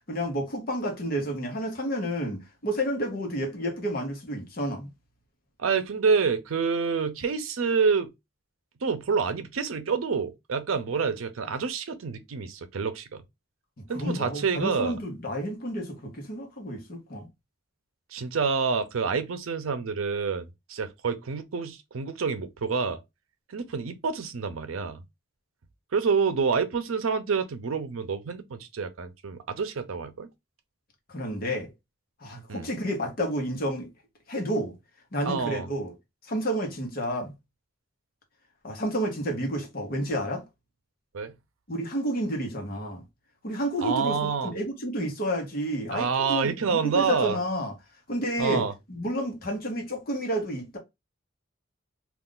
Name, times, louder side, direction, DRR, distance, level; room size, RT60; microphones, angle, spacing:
voice 1, 0.1-4.9 13.8-17.3 31.1-31.7 32.2-33.9 34.3-34.8 35.1-35.9 36.2-37.3 38.6-40.4 41.7-43.0 43.4-47.7 48.1-50.8, equal, 45° left, 0.9 m, -30 dB
voice 2, 5.6-8.1 8.8-13.2 13.9-15.0 18.1-23.0 23.5-25.0 25.9-30.3 32.5-32.7 35.3-35.7 41.1-41.3 43.8-44.5 45.9-47.4 48.4-48.7, right 5 dB, 90° right, 0.5 m, -27 dB
2.4 x 2.4 x 3.7 m
head